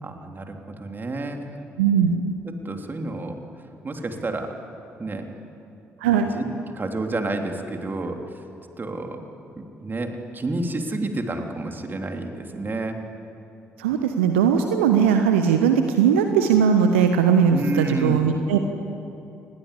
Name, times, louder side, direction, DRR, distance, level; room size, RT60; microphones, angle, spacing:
voice 1, 0.0-1.6 2.6-3.4 3.8-4.5 5.0-5.3 6.0-6.4 6.7-8.2 8.8-9.2 9.6-13.0 17.5-18.2 18.5-18.6, right 2 dB, 30° right, 4 dB, 3.3 m, -30 dB
voice 2, 1.8-2.2 6.0-6.3 13.8-18.6, right 7 dB, 75° right, 6 dB, 1.2 m, -19 dB
27.5 x 21.0 x 8.4 m, 2.7 s
figure-of-eight pair, 45°, 7 cm